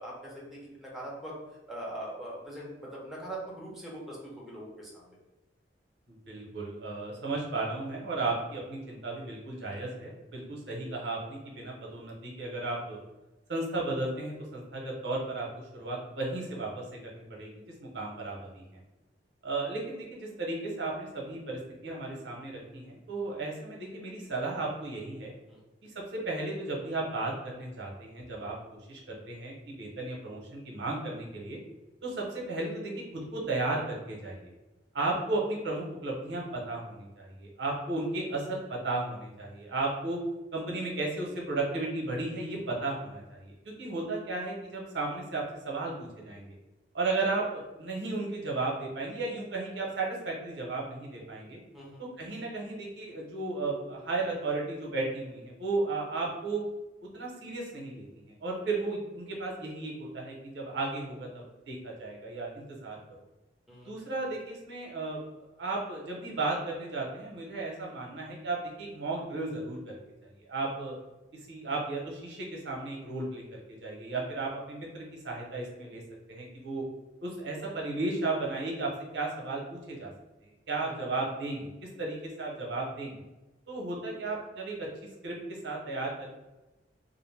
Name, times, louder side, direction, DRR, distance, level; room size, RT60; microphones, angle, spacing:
voice 1, 0.0-1.3 1.7-5.2 25.5-25.6 51.7-52.0 63.7-63.9 80.7-81.0, right 1 dB, ahead, -5 dB, 0.6 m, -42 dB
voice 2, 6.1-13.0 13.5-15.5 15.7-18.8 19.4-25.3 25.8-28.5 28.9-31.6 32.0-34.5 34.9-40.2 40.5-46.5 46.9-51.6 52.0-56.6 57.0-63.0 63.9-65.2 65.6-70.0 70.4-70.9 71.5-76.0 76.3-76.8 77.2-80.1 80.7-81.7 82.0-83.2 83.7-84.9 85.2-85.4 85.6-86.4, right 2 dB, 75° right, -2 dB, 0.7 m, -34 dB
2.5 x 2.1 x 3.2 m, 1.1 s
head